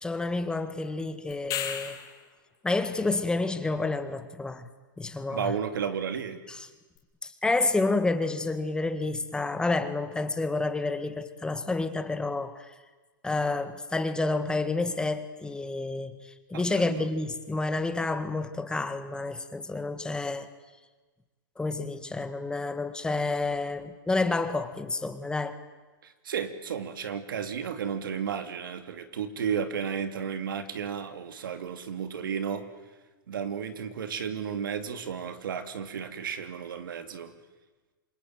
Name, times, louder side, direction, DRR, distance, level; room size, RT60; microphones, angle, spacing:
voice 1, 0.0-2.0 2.6-4.7 5.0-5.5 6.5-6.7 7.2-12.7 13.2-20.5 21.6-25.6, left 3 dB, 5° left, 10 dB, 1.8 m, -29 dB
sound 1, 1.3-2.3 7.0-7.1, left 10 dB, 35° left, 3.7 m, -34 dB
voice 2, 5.3-6.4 16.5-17.0 26.0-32.7 33.3-37.3, right 7 dB, 80° right, 9 dB, 2.9 m, -33 dB
27.5 x 23.0 x 9.2 m, 1.3 s
hypercardioid pair, 130°, 11 cm